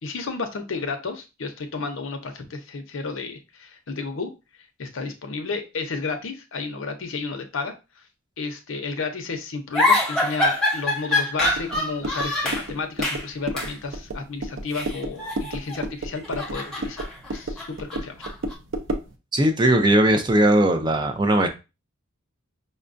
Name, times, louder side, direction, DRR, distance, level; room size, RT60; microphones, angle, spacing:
voice 1, 0.0-4.3 4.8-7.7 8.4-17.0 17.3-18.2, left 4 dB, 75° left, 7 dB, 0.6 m, -32 dB
sound 1, 9.7-12.7 13.0-13.3 13.6-13.8 14.7-15.8 16.2-18.5, left 2 dB, 5° left, 0.8 m, -25 dB
sound 2, 11.5-19.1, right 1 dB, 65° right, 0.6 m, -33 dB
voice 2, 19.3-21.5, right 1 dB, 20° right, 6 dB, 0.4 m, -19 dB
5.2 x 2.3 x 2.5 m, 0.27 s
head